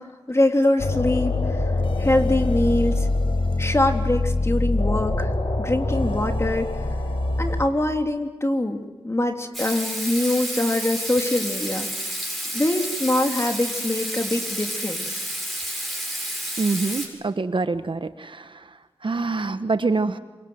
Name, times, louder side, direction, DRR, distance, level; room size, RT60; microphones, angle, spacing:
voice 1, 0.0-1.7 2.0-3.1 3.6-5.3 5.6-6.8 7.4-12.2 12.5-15.2, left 1 dB, 25° left, 4 dB, 3.2 m, -24 dB
sound 1, 0.8-7.7, left 2 dB, 65° left, 4.1 m, -24 dB
Water tap faucet / Sink (filling or washing), 9.5-17.1, equal, ahead, 7.6 m, -30 dB
voice 2, 16.6-18.7 19.0-20.2, right 3 dB, 55° right, 11 dB, 1.2 m, -25 dB
27.0 x 24.5 x 7.8 m, 1.2 s
cardioid pair, 55°, 10 cm